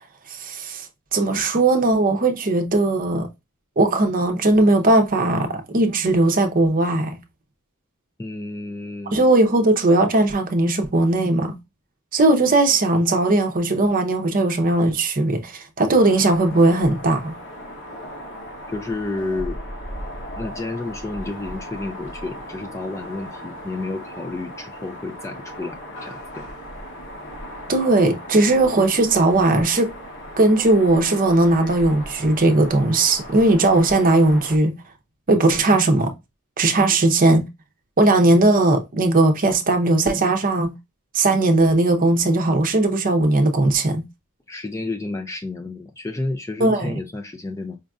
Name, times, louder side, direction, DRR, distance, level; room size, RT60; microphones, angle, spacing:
voice 1, 0.3-0.9 1.1-3.3 3.8-7.2 9.1-11.6 12.1-17.3 27.7-29.9 30.4-34.8 35.3-36.1 36.6-37.5 38.0-40.7 41.1-44.0 46.6-46.9, right 2 dB, 40° right, 0.7 m, -18 dB
voice 2, 8.2-9.3 18.7-19.6 20.3-26.5 44.5-47.8, left 2 dB, 15° left, 0.4 m, -31 dB
sound 1, 15.9-34.6, equal, 55° left, 0.9 m, -37 dB
5.0 x 2.5 x 2.3 m
head